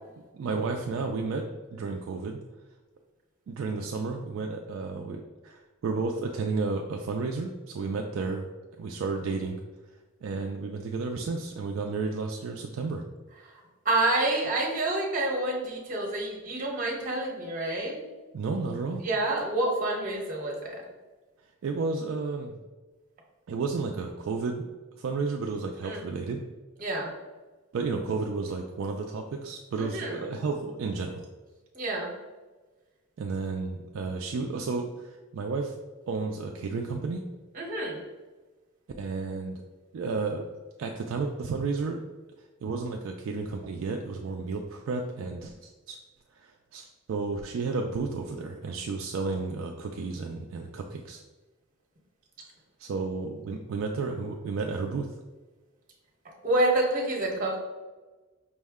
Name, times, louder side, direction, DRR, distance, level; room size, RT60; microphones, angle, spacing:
voice 1, 0.3-1.4 1.7-2.4 3.5-8.5 8.8-9.6 10.2-13.0 18.3-19.0 21.6-22.6 23.5-24.7 25.0-26.4 27.7-31.3 33.2-35.8 36.1-37.2 39.0-39.6 39.9-40.4 40.8-42.0 42.6-46.0 46.4-51.2 52.8-55.1, right 4 dB, 65° right, 2 dB, 0.3 m, -32 dB
voice 2, 13.8-18.0 19.0-20.8 25.8-26.0 26.8-27.1 29.8-30.2 31.7-32.1 37.5-38.0 56.4-57.6, right 2 dB, 40° right, -1 dB, 1.0 m, -28 dB
5.3 x 2.1 x 3.5 m, 1.2 s
head